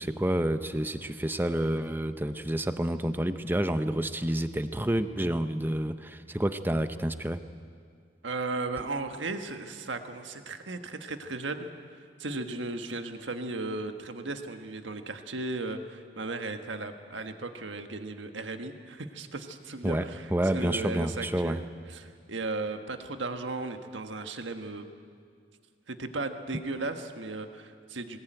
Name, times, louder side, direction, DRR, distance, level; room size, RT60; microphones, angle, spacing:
voice 1, 0.0-7.4 19.8-21.6, right 1 dB, 10° right, 10 dB, 0.7 m, -29 dB
voice 2, 8.2-11.7 12.2-24.8 25.9-28.2, right 3 dB, 85° right, 6 dB, 1.4 m, -36 dB
20.5 x 19.0 x 9.2 m, 2.1 s
head